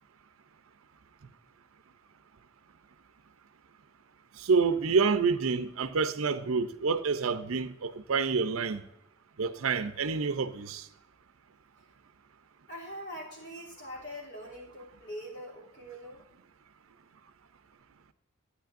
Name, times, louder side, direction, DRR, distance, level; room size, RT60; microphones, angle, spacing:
voice 1, 4.4-8.8 9.4-10.9, right 5 dB, 70° right, 0.6 m, -28 dB
voice 2, 12.7-16.3, equal, 55° left, 2.9 m, -43 dB
12.0 x 9.4 x 2.5 m
head